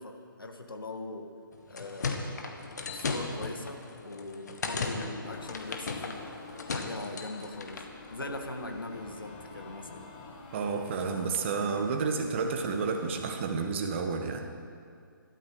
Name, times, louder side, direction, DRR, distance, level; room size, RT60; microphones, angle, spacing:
voice 1, 0.0-1.3 1.7-2.3 2.9-6.3 6.7-7.8 8.1-10.0, left 2 dB, 70° left, 4 dB, 1.9 m, -41 dB
sound 1, 1.5-7.9, left 4 dB, 50° left, 1.7 m, -36 dB
sound 2, 5.2-13.3, left 3 dB, 30° left, 1.8 m, -48 dB
voice 2, 10.5-14.5, right 5 dB, 30° right, 4 dB, 1.5 m, -30 dB
21.5 x 13.0 x 4.8 m, 2.3 s
figure-of-eight pair, 140°, 12 cm